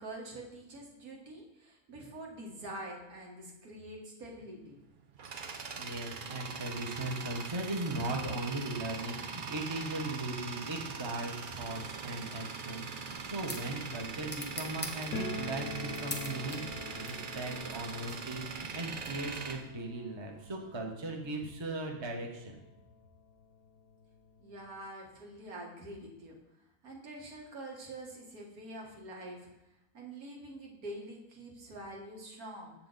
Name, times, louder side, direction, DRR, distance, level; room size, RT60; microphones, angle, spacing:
voice 1, 0.0-4.8 24.4-26.4 26.8-29.5 29.9-32.7, right 1 dB, 75° right, -1 dB, 1.9 m, -45 dB
Tools, 4.7-20.5, right 5 dB, 55° right, 0.5 m, -42 dB
voice 2, 5.8-22.6, right 2 dB, 20° right, 1 dB, 0.8 m, -38 dB
sound 1, 12.8-19.8, left 1 dB, 10° left, 0.8 m, -47 dB
sound 2, 15.1-21.8 22.1-22.2 22.4-22.5 23.3-23.4 23.7-24.9, left 2 dB, 70° left, 1.0 m, -45 dB
7.4 x 7.3 x 3.9 m, 0.95 s
omnidirectional pair, 1.6 m